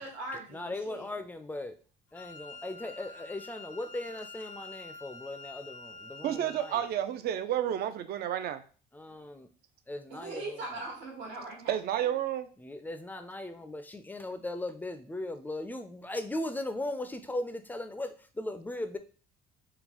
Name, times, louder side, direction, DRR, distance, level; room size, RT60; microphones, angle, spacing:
voice 1, 0.0-1.1 6.0-6.1 9.1-9.2 10.1-11.7 12.0-12.1, right 2 dB, 80° right, -2 dB, 1.4 m, -41 dB
voice 2, 0.5-1.8 2.1-6.9 8.9-9.5 9.9-10.6 12.6-19.0, left 1 dB, 10° left, 9 dB, 0.3 m, -38 dB
Wind instrument woodwind instrument, 2.1-7.0, left 3 dB, 70° left, 0.5 m, -47 dB
voice 3, 6.2-8.6 11.7-12.4, right 11 dB, 55° right, 12 dB, 0.4 m, -30 dB
3.7 x 2.2 x 2.9 m, 0.39 s
cardioid pair, 95°, 19 cm